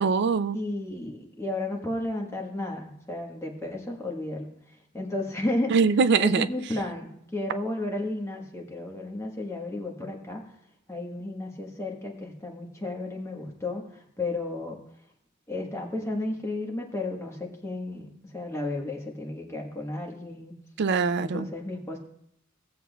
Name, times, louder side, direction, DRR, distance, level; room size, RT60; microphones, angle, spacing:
voice 1, 0.0-0.6 5.7-6.5 20.8-21.5, right 5 dB, 55° right, 0.4 m, -22 dB
voice 2, 0.5-4.5 4.9-5.7 6.2-10.4 10.9-14.8 15.5-20.6 21.2-22.0, left 2 dB, 15° left, 1.4 m, -33 dB
17.0 x 7.3 x 2.3 m
head